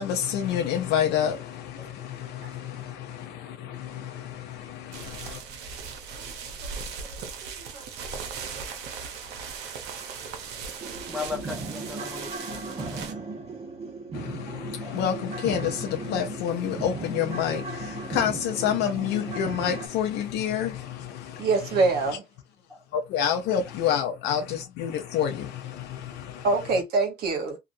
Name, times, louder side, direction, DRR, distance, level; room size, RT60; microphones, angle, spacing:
voice 1, 0.0-5.4 14.1-22.2 22.9-26.8, left 9 dB, 85° left, 0.6 m, -29 dB
sound 1, 4.9-13.1, right 5 dB, 85° right, 0.7 m, -38 dB
voice 2, 7.4-8.3 8.6-8.7 14.5-14.6 21.4-22.2 26.4-27.6, right 3 dB, 70° right, 1.1 m, -26 dB
sound 2, 9.9-10.0 10.4-10.5 10.8-19.9, right 3 dB, 35° right, 1.1 m, -37 dB
voice 3, 11.1-13.2 22.7-22.8, left 4 dB, 5° right, 0.7 m, -37 dB
2.7 x 2.3 x 2.6 m
cardioid pair, 110°, 17 cm